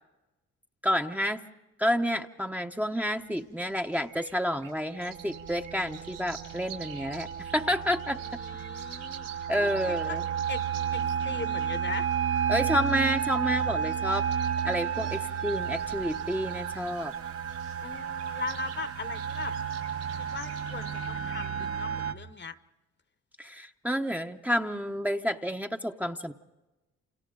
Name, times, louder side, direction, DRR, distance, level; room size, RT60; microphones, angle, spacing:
voice 1, 0.8-1.4 1.8-8.2 9.5-10.2 12.5-14.2 14.6-17.1 23.4-26.3, equal, 5° right, 4 dB, 0.9 m, -29 dB
sound 1, 3.2-21.7, right 8 dB, 85° right, 7.7 m, -50 dB
sound 2, 5.0-22.1, right 8 dB, 50° right, 1.1 m, -32 dB
voice 2, 8.1-9.3 9.6-10.2 10.5-10.6 10.9-12.1 17.8-19.5 20.2-22.6, left 4 dB, 35° left, 12 dB, 1.1 m, -39 dB
29.5 x 27.5 x 3.8 m, 1.1 s
cardioid pair, 90°, 30 cm